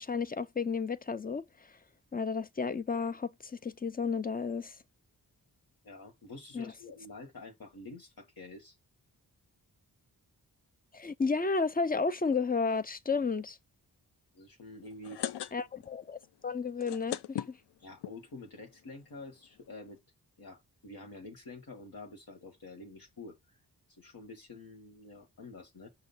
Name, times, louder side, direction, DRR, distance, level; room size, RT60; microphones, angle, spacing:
voice 1, 0.0-1.4 2.1-4.8 6.5-6.7 10.9-13.6 15.5-17.6, left 4 dB, 25° left, 0.5 m, -32 dB
voice 2, 5.8-8.8 14.3-15.2 17.8-20.0 20.4-23.6 23.9-25.9, left 2 dB, 60° left, 1.5 m, -48 dB
sound 1, 14.8-16.0 16.2-16.3 16.7-18.1 18.8-18.9 19.2-19.3 19.4-19.7, left 11 dB, 85° left, 0.5 m, -38 dB
6.3 x 2.8 x 5.5 m
wide cardioid pair, 75°, 39 cm